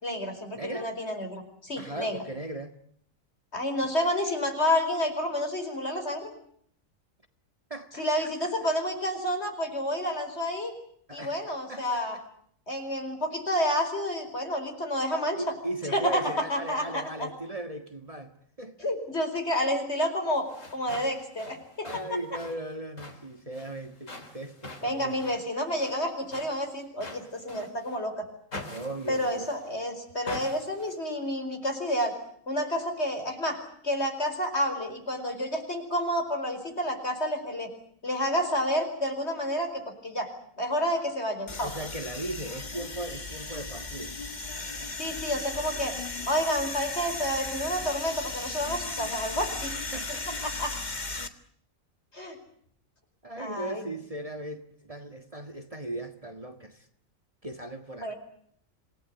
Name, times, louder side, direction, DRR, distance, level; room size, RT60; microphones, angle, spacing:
voice 1, 0.0-2.2 3.5-6.3 8.0-10.7 11.1-12.2 12.7-15.4 15.9-17.3 18.8-21.9 24.8-28.3 29.1-32.1 32.5-33.6 33.8-37.7 38.0-40.3 40.6-41.7 45.0-45.9 46.3-49.7 50.4-50.8 52.1-52.4 53.4-53.9 58.0-58.2, equal, 55° left, 5.2 m, -29 dB
voice 2, 0.5-0.9 1.8-2.7 7.7-8.0 8.4-8.5 11.1-11.4 11.7-12.2 15.4-18.9 21.8-25.2 28.7-29.5 41.6-44.1 49.9-50.5 53.2-56.9 57.4-58.1, right 1 dB, 25° right, 1.8 m, -38 dB
sound 1, 20.4-28.0 28.5-29.8 30.3-31.0, left 2 dB, 70° left, 3.7 m, -45 dB
sound 2, 41.5-51.3, left 3 dB, 35° left, 1.8 m, -36 dB
27.5 x 18.0 x 9.4 m
omnidirectional pair, 1.4 m